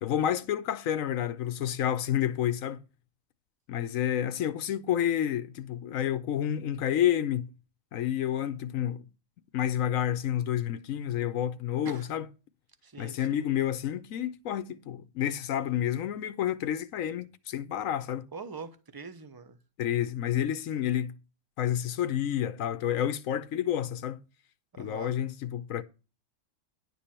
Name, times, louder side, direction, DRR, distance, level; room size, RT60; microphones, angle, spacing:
voice 1, 0.0-2.8 3.7-7.5 7.9-9.0 9.5-12.3 13.0-18.3 19.8-21.2 21.6-24.2 24.8-25.8, left 10 dB, 90° left, 1.1 m, -29 dB
voice 2, 12.8-13.3 18.3-19.6 24.7-25.2, right 4 dB, 20° right, 0.9 m, -43 dB
11.0 x 7.0 x 4.3 m
omnidirectional pair, 1.4 m